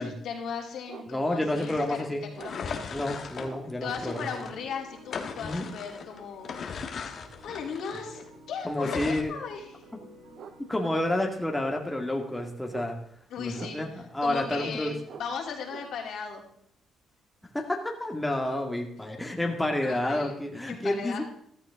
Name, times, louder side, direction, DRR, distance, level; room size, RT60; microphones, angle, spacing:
voice 1, 0.0-2.9 3.8-6.5 7.4-8.2 8.5-9.8 13.3-16.4 19.8-20.3 20.7-21.2, left 6 dB, 75° left, 1 dB, 3.2 m, -37 dB
sound 1, 0.9-1.1 1.7-2.0 2.3-2.6 3.3-3.6 4.1-4.3 6.3-6.6 9.4-9.5 10.4-10.6 10.9-11.0 11.4-11.7 12.3-13.1 13.5-14.0 14.5-14.8 15.1-15.9, right 7 dB, 65° right, 1.1 m, -44 dB
voice 2, 1.1-2.2 2.9-4.3 5.4-5.7 8.6-9.3 10.7-13.0 13.4-15.0 17.5-21.2, left 1 dB, 10° left, 2 dB, 2.1 m, -29 dB
sound 2, 1.5-4.6 5.0-8.3 8.7-9.2, left 6 dB, 55° left, 1.6 m, -38 dB
sound 3, 3.0-11.1, left 1 dB, 90° right, 5.0 m, -53 dB
14.0 x 13.0 x 3.7 m, 0.66 s
cardioid pair, 90°, 0 cm